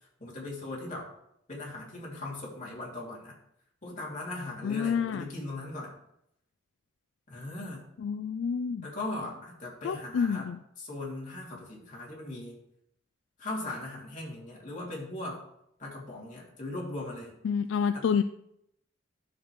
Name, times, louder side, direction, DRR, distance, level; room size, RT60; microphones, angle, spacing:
voice 1, 0.2-1.1 1.5-3.3 3.8-5.9 7.3-7.8 8.8-10.5 10.8-12.6 13.4-15.4 15.8-17.3 17.9-18.1, left 2 dB, 40° left, -4 dB, 2.7 m, -39 dB
voice 2, 4.6-5.2 8.0-8.9 9.8-10.6 17.4-18.2, left 6 dB, 70° left, 11 dB, 0.3 m, -28 dB
12.0 x 6.6 x 3.1 m, 0.77 s
head